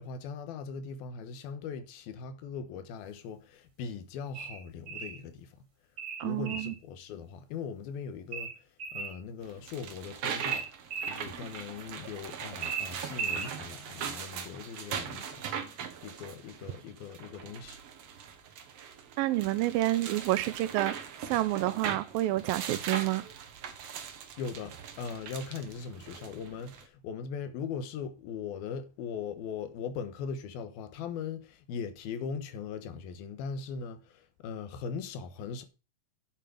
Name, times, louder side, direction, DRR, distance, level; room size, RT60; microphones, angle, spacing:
voice 1, 0.0-5.6 6.2-10.7 11.1-17.8 24.4-35.6, left 6 dB, 85° left, 3.0 m, -40 dB
sound 1, 4.3-5.2 6.0-6.8 8.3-9.2 10.4-11.2 12.6-13.5, right 6 dB, 40° right, 3.1 m, -36 dB
voice 2, 6.2-6.7 19.2-21.0 21.3-23.3, right 16 dB, 80° right, 2.4 m, -29 dB
sound 2, 9.4-26.8, right 7 dB, 55° right, 1.8 m, -40 dB
9.1 x 7.6 x 5.1 m
omnidirectional pair, 4.3 m